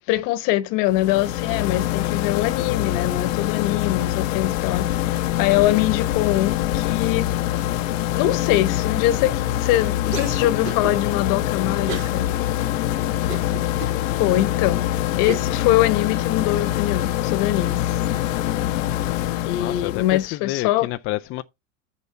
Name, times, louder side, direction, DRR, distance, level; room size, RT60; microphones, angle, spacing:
voice 1, 0.1-7.3 8.1-12.3 14.2-14.9 15.2-18.0 19.4-20.9, left 14 dB, 55° left, 1.1 m, -23 dB
sound 1, 0.9-20.3, left 13 dB, 80° left, 0.9 m, -24 dB
Cough, 10.1-10.9 11.9-12.2 12.7-12.8 13.3-14.0 14.6-14.7 15.3-15.6, right 8 dB, 90° right, 2.3 m, -32 dB
voice 2, 13.1-13.6 19.6-21.4, left 16 dB, 35° left, 0.4 m, -30 dB
7.0 x 6.8 x 4.2 m
supercardioid pair, 125°, 39 cm